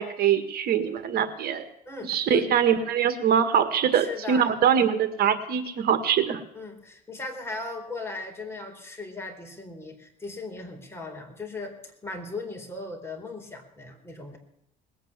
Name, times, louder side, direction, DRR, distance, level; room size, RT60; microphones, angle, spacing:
voice 1, 0.0-1.6 2.0-6.4, right 8 dB, 65° right, 10 dB, 1.7 m, -23 dB
voice 2, 1.9-2.5 3.8-4.5 6.5-14.4, left 3 dB, 15° left, 2 dB, 4.2 m, -37 dB
20.0 x 9.1 x 7.4 m, 0.78 s
cardioid pair, 110°, 17 cm